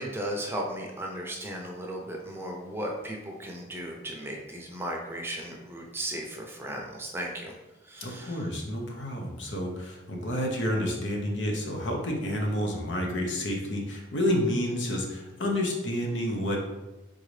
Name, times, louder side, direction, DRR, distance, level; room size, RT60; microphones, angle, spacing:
voice 1, 0.0-7.5 7.8-8.4, right 1 dB, 15° right, 0 dB, 0.5 m, -36 dB
voice 2, 8.0-16.6, left 1 dB, 85° left, 0 dB, 0.9 m, -29 dB
4.0 x 3.8 x 3.2 m, 1.1 s
head